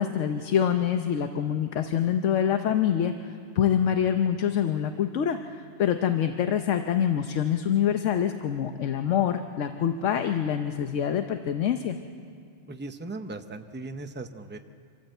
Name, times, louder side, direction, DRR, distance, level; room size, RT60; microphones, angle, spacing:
voice 1, 0.0-12.0, left 9 dB, 80° left, 7 dB, 1.1 m, -25 dB
voice 2, 12.7-14.6, right 2 dB, 10° right, 7 dB, 0.6 m, -38 dB
26.0 x 14.0 x 7.8 m, 2.3 s
omnidirectional pair, 1.3 m